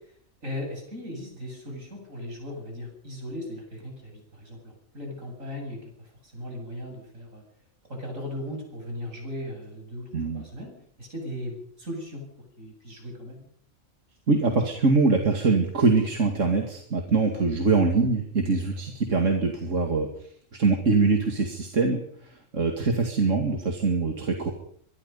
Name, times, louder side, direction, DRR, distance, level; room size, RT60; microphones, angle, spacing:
voice 1, 0.4-7.4 7.9-12.3 12.6-13.5 18.4-18.7, left 1 dB, 90° right, 2 dB, 8.5 m, -38 dB
voice 2, 10.1-10.4 14.3-20.1 20.5-22.0 22.5-24.5, right 4 dB, 70° right, 3 dB, 2.7 m, -23 dB
24.0 x 23.5 x 5.5 m, 0.63 s
omnidirectional pair, 1.3 m